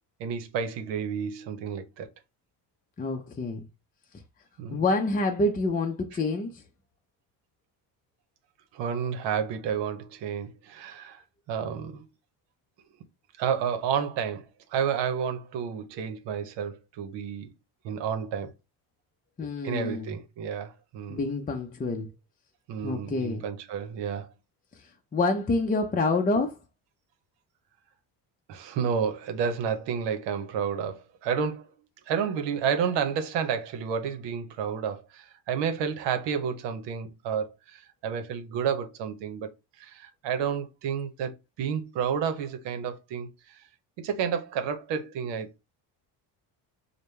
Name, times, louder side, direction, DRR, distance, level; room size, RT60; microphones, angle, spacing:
voice 1, 0.2-2.1 4.6-4.8 8.7-11.2 11.5-12.0 13.4-14.4 14.7-17.5 17.8-18.5 19.6-21.2 22.7-24.3 28.5-31.7 32.1-39.5 39.8-43.6 44.0-45.5, right 7 dB, 80° right, 0.9 m, -30 dB
voice 2, 3.0-3.7 4.7-6.6 19.4-20.2 21.1-22.1 22.8-23.4 24.7-26.6, left 2 dB, 20° left, 0.6 m, -27 dB
5.1 x 2.2 x 3.2 m
cardioid pair, 90°, 43 cm